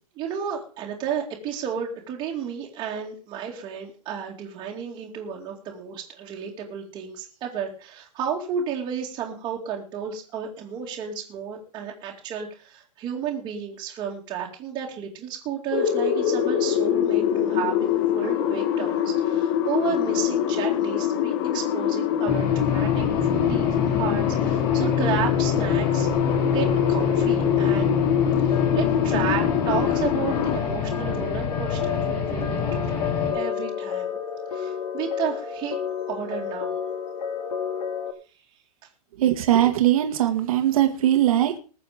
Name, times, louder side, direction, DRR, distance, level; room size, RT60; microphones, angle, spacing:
voice 1, 0.2-26.1 26.4-28.0 28.4-34.2 34.5-35.8 36.1-36.8, right 7 dB, 20° right, -1 dB, 2.3 m, -32 dB
sound 1, 15.7-30.6, left 10 dB, 40° left, 1.3 m, -24 dB
sound 2, 22.3-33.3, left 5 dB, 20° left, 6.8 m, -27 dB
sound 3, 28.5-38.1, left 8 dB, 85° left, 2.1 m, -31 dB
voice 2, 39.2-41.6, right 12 dB, 60° right, 6 dB, 1.8 m, -20 dB
20.0 x 6.9 x 5.1 m, 0.38 s
hypercardioid pair, 160°, 21 cm